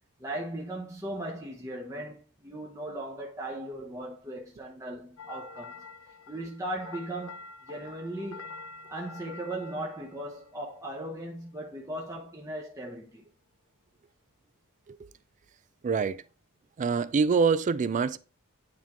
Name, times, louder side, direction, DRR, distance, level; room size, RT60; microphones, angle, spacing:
voice 1, 0.2-2.2 2.4-5.9 6.3-8.5 8.9-13.2, right 1 dB, 15° right, 0.8 m, -38 dB
sound 1, 5.2-11.4, left 4 dB, 70° left, 0.7 m, -47 dB
voice 2, 15.8-16.2 16.8-18.2, right 5 dB, 35° right, 0.3 m, -25 dB
9.6 x 3.6 x 2.9 m
head